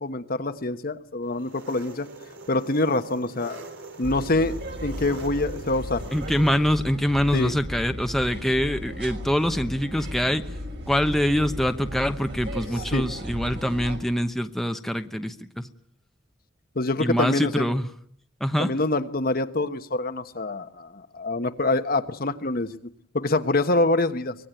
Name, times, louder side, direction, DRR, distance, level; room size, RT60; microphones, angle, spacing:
voice 1, 0.0-2.1 2.5-3.6 4.0-4.5 4.8-6.0 7.3-7.5 12.9-13.1 16.7-17.7 18.6-22.8 23.1-24.4, left 2 dB, 50° left, 9 dB, 1.2 m, -25 dB
Engine, 1.3-6.6, right 2 dB, 85° right, 3.9 m, -43 dB
sound 1, 4.0-14.0, equal, 65° right, 6.1 m, -35 dB
voice 2, 6.1-10.4 10.9-15.7 17.0-17.9 18.4-18.7, equal, ahead, 7 dB, 1.0 m, -24 dB
24.5 x 20.0 x 9.1 m, 0.66 s
head